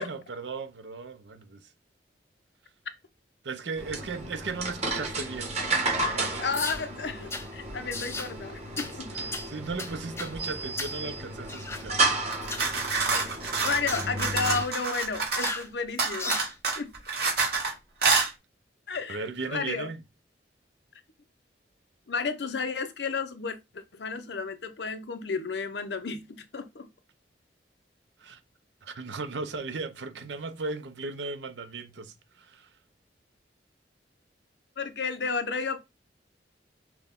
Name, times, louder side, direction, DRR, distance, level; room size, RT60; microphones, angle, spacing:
voice 1, 0.0-1.7 3.4-6.5 9.1-12.1 19.1-20.0 28.2-28.4 28.8-32.7, right 4 dB, 85° right, 0.7 m, -37 dB
sound 1, 3.8-14.6, right 2 dB, 40° right, 1.3 m, -32 dB
voice 2, 6.4-9.3 13.1-13.2 13.6-16.4 16.8-16.9 18.9-19.9 22.1-26.9 34.8-35.8, left 4 dB, 70° left, 0.7 m, -32 dB
sound 2, 6.5-6.8 7.3-7.5 7.9-8.3 8.8-8.9 9.3-9.5 9.8-10.3 10.8-11.0 11.5-11.9 12.4-12.7 13.1-13.3 13.9-14.1 14.5-14.7 15.4-15.7 16.2-16.5, left 3 dB, 15° left, 0.5 m, -35 dB
sound 3, 12.3-15.6 16.0-17.7 18.0-18.3, right 4 dB, 60° right, 1.8 m, -27 dB
6.0 x 2.3 x 3.6 m
head